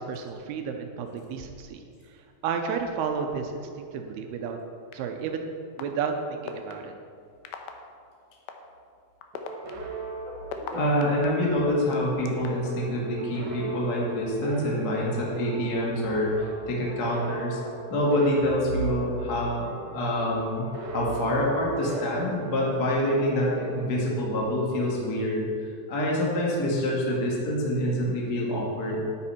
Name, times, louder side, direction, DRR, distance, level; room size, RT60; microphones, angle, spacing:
voice 1, 0.0-4.6 4.9-5.5 5.8-6.9, right 6 dB, 80° right, 4 dB, 2.5 m, -32 dB
sound 1, 4.9-5.0 5.8-5.9 6.5-6.7 7.4-7.7 8.5-8.6 9.2-11.3 11.9-12.7, left 10 dB, 80° left, 2.2 m, -37 dB
sound 2, 9.3-24.7, right 3 dB, 60° right, 2.3 m, -39 dB
voice 2, 10.7-17.6 17.9-20.7 20.9-29.0, left 1 dB, 50° left, -4 dB, 1.2 m, -26 dB
11.0 x 9.7 x 4.3 m, 2.3 s
omnidirectional pair, 5.1 m